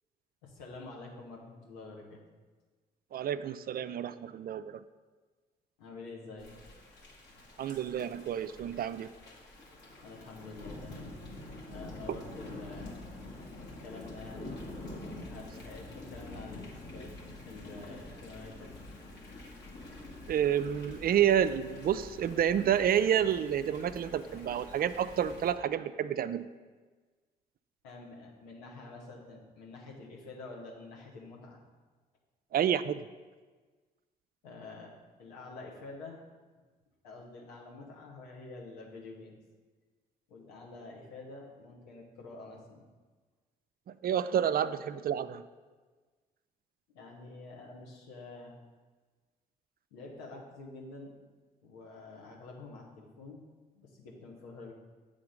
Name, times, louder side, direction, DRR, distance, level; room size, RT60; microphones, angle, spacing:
voice 1, 0.4-2.2 5.8-6.5 10.0-11.1 11.7-13.0 13.8-14.6 15.3-17.1 17.5-18.7 27.8-31.6 34.4-34.9 35.2-36.2 37.0-39.4 40.3-42.9 46.9-48.6 49.9-51.1 51.6-53.4 53.7-54.7, left 3 dB, 85° left, -1 dB, 1.2 m, -47 dB
voice 2, 3.1-4.8 7.6-9.1 12.1-12.2 20.3-26.5 32.5-33.0 44.0-45.4, right 9 dB, 50° right, 13 dB, 0.4 m, -29 dB
Thunder / Rain, 6.4-25.5, left 2 dB, 60° left, 1.8 m, -47 dB
7.7 x 3.8 x 5.0 m, 1.4 s
hypercardioid pair, 45°, 20 cm